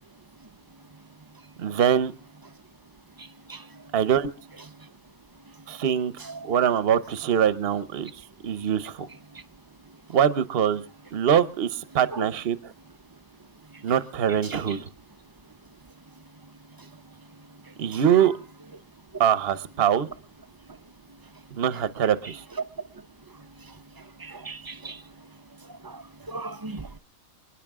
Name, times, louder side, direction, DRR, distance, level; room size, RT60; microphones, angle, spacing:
voice 1, 1.6-2.1 3.9-4.3 5.7-6.1 6.4-9.0 10.1-10.8 11.1-12.7 13.8-14.8 17.8-18.3 19.2-20.1 21.5-22.4, right 9 dB, 50° right, 1.0 m, -23 dB
voice 2, 24.2-25.0 25.8-26.0 26.3-27.0, right 2 dB, 25° right, 0.4 m, -37 dB
28.5 x 10.0 x 3.6 m
omnidirectional pair, 1.4 m